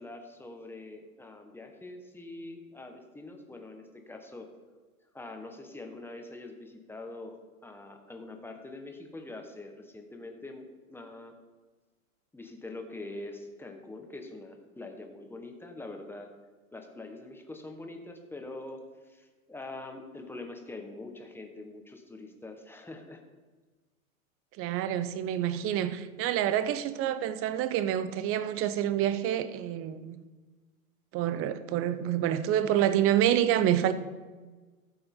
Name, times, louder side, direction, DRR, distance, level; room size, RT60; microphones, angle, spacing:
voice 1, 0.0-4.5 5.1-11.3 12.3-16.3 16.7-23.2, left 2 dB, 5° left, 1.5 m, -44 dB
voice 2, 24.6-30.2 31.1-33.9, right 11 dB, 30° right, 0.8 m, -27 dB
14.5 x 7.7 x 3.8 m
hypercardioid pair, 100°, 43 cm